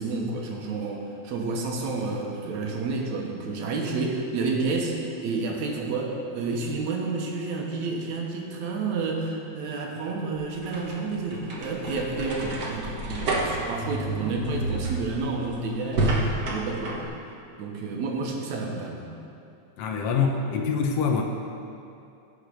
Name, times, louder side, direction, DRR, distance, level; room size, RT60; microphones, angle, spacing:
voice 1, 0.0-17.0 17.6-19.1, right 3 dB, 70° right, 0 dB, 2.5 m, -30 dB
sound 1, 10.4-17.1, right 2 dB, 45° right, 1.3 m, -30 dB
voice 2, 19.8-21.2, left 5 dB, 65° left, 3 dB, 1.7 m, -25 dB
16.0 x 6.5 x 5.1 m, 2.6 s
omnidirectional pair, 3.4 m